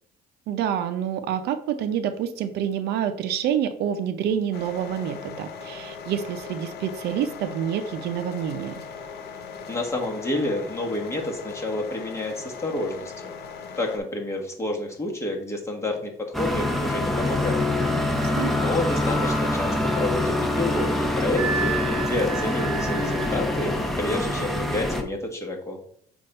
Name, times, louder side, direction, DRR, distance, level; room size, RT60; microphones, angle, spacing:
voice 1, 0.5-8.7 18.0-18.5, right 9 dB, 75° right, 9 dB, 0.6 m, -27 dB
sound 1, 4.5-14.0, left 6 dB, 70° left, 1.1 m, -39 dB
voice 2, 9.7-13.3 13.8-17.6 17.9-25.8, left 1 dB, 15° left, 0 dB, 1.5 m, -29 dB
sound 2, 16.3-25.0, left 1 dB, ahead, 0.8 m, -25 dB
Wind instrument woodwind instrument, 21.4-23.4, right 7 dB, 30° right, 1.0 m, -32 dB
6.7 x 2.6 x 5.4 m, 0.63 s
cardioid pair, 110°, 17 cm